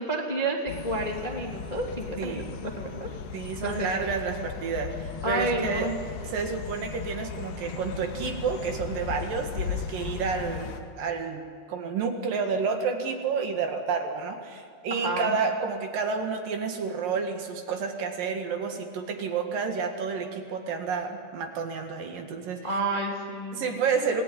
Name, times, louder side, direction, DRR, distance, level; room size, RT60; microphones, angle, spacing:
voice 1, 0.0-3.1 3.6-4.1 5.2-6.0 14.9-15.4 22.6-23.8, right 2 dB, 15° left, 0 dB, 1.8 m, -30 dB
sound 1, 0.7-10.8, left 6 dB, 80° left, 3.7 m, -37 dB
voice 2, 2.2-2.6 3.3-5.9 6.2-10.7 11.0-22.7 23.5-24.2, right 5 dB, 65° right, 4 dB, 3.2 m, -30 dB
28.0 x 18.5 x 9.9 m, 2.2 s
omnidirectional pair, 4.6 m